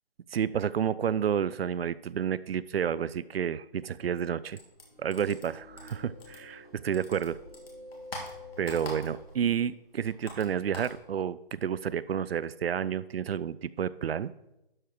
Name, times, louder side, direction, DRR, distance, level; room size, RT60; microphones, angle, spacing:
voice 1, 0.3-4.6 5.0-7.4 8.6-14.3, right 8 dB, 75° right, 18 dB, 0.5 m, -30 dB
sound 1, 4.5-6.7 6.9-9.4 9.7-11.0, left 1 dB, 75° left, 2.9 m, -44 dB
sound 2, 4.8-9.5, left 1 dB, 40° right, 1.8 m, -49 dB
12.0 x 4.8 x 4.6 m, 0.90 s
hypercardioid pair, 170°, 30 cm